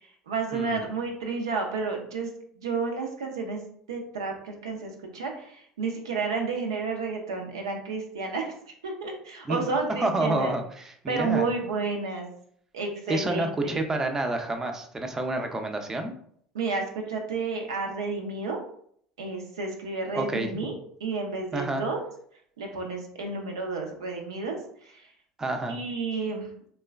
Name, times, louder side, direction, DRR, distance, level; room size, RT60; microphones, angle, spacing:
voice 1, 0.3-2.3 2.6-3.6 3.9-8.5 8.8-10.5 11.1-12.3 12.7-13.8 16.5-18.6 19.2-20.7 21.0-22.0 22.6-24.6 24.9-25.1 25.7-26.5, right 4 dB, 90° right, 1 dB, 0.5 m, -31 dB
voice 2, 10.0-11.5 13.1-16.1 20.1-20.5 21.5-21.8 25.4-25.8, right 2 dB, 20° right, 4 dB, 0.5 m, -29 dB
3.0 x 2.1 x 2.3 m, 0.64 s
hypercardioid pair, 75°, 2 cm